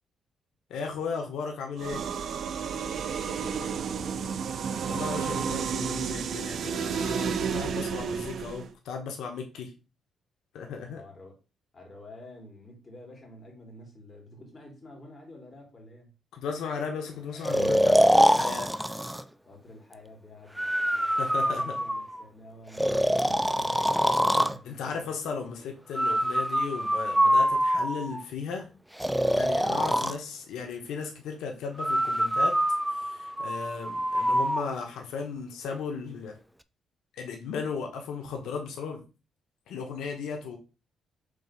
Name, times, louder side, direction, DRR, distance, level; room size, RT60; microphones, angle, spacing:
voice 1, 0.7-2.0 4.9-9.7 10.5-11.0 16.3-18.7 21.1-21.8 24.6-28.7 29.3-32.6 32.9-36.4 37.2-39.0 39.7-40.6, left 5 dB, 85° left, 1.2 m, -36 dB
sound 1, 1.8-8.7, right 6 dB, 55° right, 0.6 m, -31 dB
voice 2, 3.0-4.4 10.8-11.4 11.7-16.1 19.4-21.2 21.4-25.1 25.4-25.7, left 1 dB, 25° left, 2.7 m, -50 dB
Breathing, 17.4-19.2 20.6-22.2 22.8-24.6 26.0-28.2 29.0-30.2 31.8-34.6, equal, 5° right, 0.3 m, -24 dB
5.3 x 3.7 x 5.4 m
cardioid pair, 135°, 0 cm